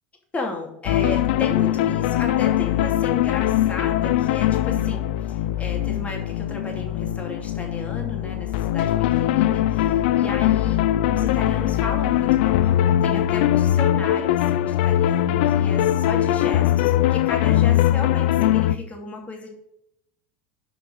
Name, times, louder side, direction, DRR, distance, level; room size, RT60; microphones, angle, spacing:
voice 1, 0.3-10.8 11.1-19.5, left 2 dB, 25° left, 1 dB, 2.7 m, -34 dB
sound 1, 0.9-18.8, left 12 dB, 75° left, 0.4 m, -21 dB
7.0 x 5.3 x 6.3 m, 0.76 s
hypercardioid pair, 100°, 6 cm